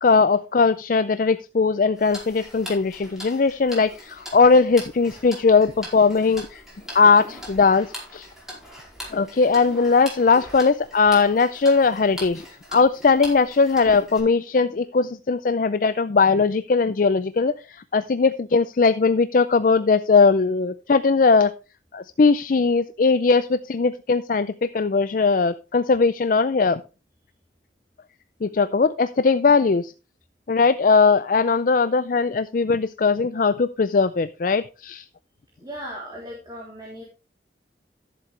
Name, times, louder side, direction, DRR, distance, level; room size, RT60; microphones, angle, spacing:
voice 1, 0.0-6.6 6.9-7.9 8.1-8.3 9.1-12.4 12.7-21.5 21.9-26.8 28.4-29.9 30.5-35.0, left 4 dB, 50° left, 13 dB, 0.4 m, -19 dB
Tick-tock, 2.0-14.2, equal, 5° right, 4.6 m, -41 dB
voice 2, 35.6-37.0, equal, 25° right, -3 dB, 3.4 m, -37 dB
13.5 x 7.7 x 3.3 m, 0.31 s
head